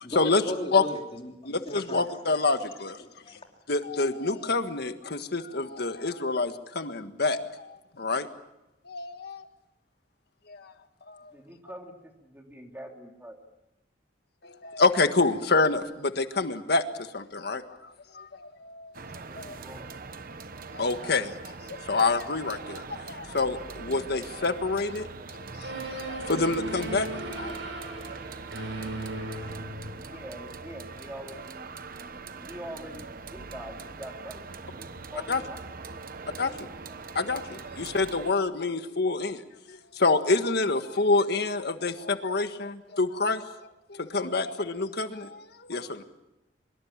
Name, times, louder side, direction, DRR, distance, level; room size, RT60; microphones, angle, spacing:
voice 1, 0.0-2.0 3.0-3.4, left 1 dB, 35° left, 2 dB, 3.1 m, -37 dB
voice 2, 1.5-3.0 3.7-8.3 8.9-9.5 10.5-10.7 11.1-11.2 14.4-18.9 19.4-19.6 20.7-27.1 27.4-27.5 27.8-27.9 28.6-28.7 35.3-35.4 36.4-36.6 37.2-39.4 39.7-43.4 43.9-46.0, left 3 dB, 65° left, 8 dB, 1.6 m, -27 dB
voice 3, 11.3-13.4 19.2-19.9 29.9-31.7 32.0-35.6 35.9-36.0 36.3-36.6 36.8-37.0, equal, 10° right, 2 dB, 3.2 m, -44 dB
sound 1, 18.9-38.3, right 4 dB, 55° right, 1.1 m, -42 dB
sound 2, 25.6-30.3, right 2 dB, 85° right, 6.7 m, -37 dB
24.5 x 22.5 x 7.4 m, 0.95 s
head